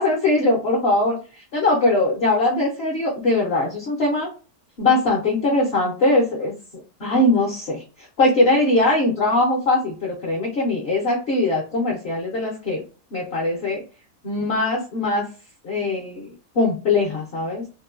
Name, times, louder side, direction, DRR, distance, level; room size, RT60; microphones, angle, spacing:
voice 1, 0.0-4.3 4.8-6.5 7.0-7.8 8.2-12.8 13.1-13.8 14.2-15.3 15.6-17.6, left 2 dB, 55° left, -3 dB, 0.7 m, -21 dB
2.9 x 2.2 x 2.4 m, 0.34 s
omnidirectional pair, 1.6 m